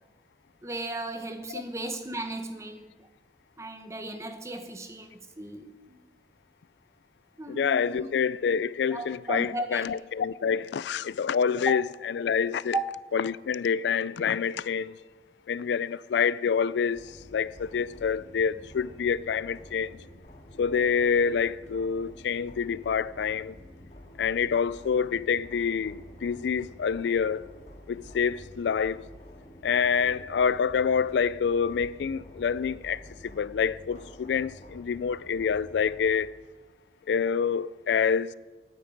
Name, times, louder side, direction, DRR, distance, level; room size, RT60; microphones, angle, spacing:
voice 1, 0.6-3.1 3.6-6.0 7.4-8.1 8.9-9.9 12.7-12.8, right 2 dB, 15° right, 1.0 m, -36 dB
voice 2, 7.5-11.8 12.2-12.7 13.1-15.0 15.5-20.0 20.6-23.6 24.2-27.4 27.9-29.0 29.6-36.3 37.1-38.3, left 6 dB, 80° left, 0.4 m, -27 dB
sound 1, 16.9-36.2, equal, 40° left, 1.8 m, -49 dB
9.3 x 8.9 x 9.2 m
head